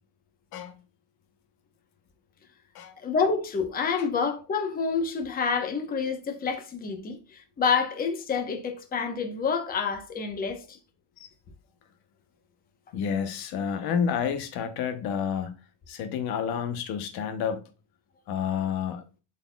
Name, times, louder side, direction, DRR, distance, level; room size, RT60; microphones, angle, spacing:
voice 1, 3.0-10.8, left 5 dB, 20° left, 0.9 m, -28 dB
voice 2, 12.9-15.6 15.9-17.6 18.3-19.0, left 7 dB, 60° left, 0.9 m, -29 dB
12.0 x 4.2 x 2.3 m
cardioid pair, 170°, 43 cm